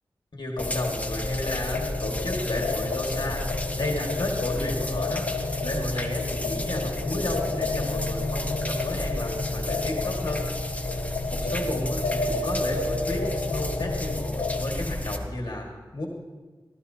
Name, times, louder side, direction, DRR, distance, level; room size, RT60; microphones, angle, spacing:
voice 1, 0.3-5.3 5.6-10.5 10.9-11.0 11.3-15.7 15.9-16.1, left 1 dB, 60° left, 0 dB, 1.7 m, -32 dB
sound 1, 0.6-14.6, left 3 dB, 85° left, 1.0 m, -32 dB
sound 2, 0.6-15.2, left 1 dB, 15° left, 1.2 m, -32 dB
17.5 x 13.5 x 2.8 m, 1.3 s
cardioid pair, 40°, 8 cm